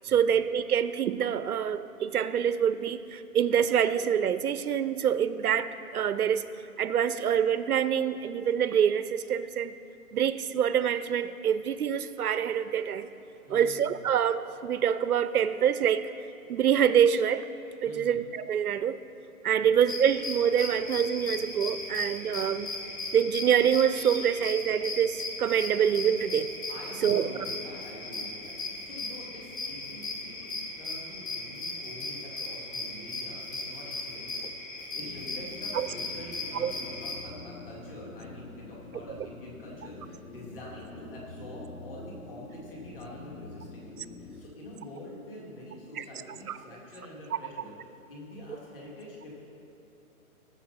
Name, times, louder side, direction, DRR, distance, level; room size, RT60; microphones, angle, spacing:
voice 1, 0.0-6.4 6.8-9.7 10.1-13.1 13.5-16.1 16.5-17.4 17.8-19.0 19.4-22.7 23.1-26.5 27.0-27.3 35.7-35.9 36.6-36.7 39.1-39.2 46.0-46.1, right 8 dB, 75° right, 13 dB, 0.6 m, -26 dB
voice 2, 13.4-14.0 17.8-18.3 19.5-19.7 26.7-34.4 34.7-43.9 44.2-47.8 48.1-49.3, left 1 dB, 35° left, -4 dB, 2.8 m, -46 dB
sound 1, 19.9-37.2, left 3 dB, 60° left, 2.4 m, -37 dB
sound 2, 35.0-44.4, left 3 dB, 85° left, 1.3 m, -46 dB
18.5 x 6.9 x 4.3 m, 2.9 s
hypercardioid pair, 175°, 45 cm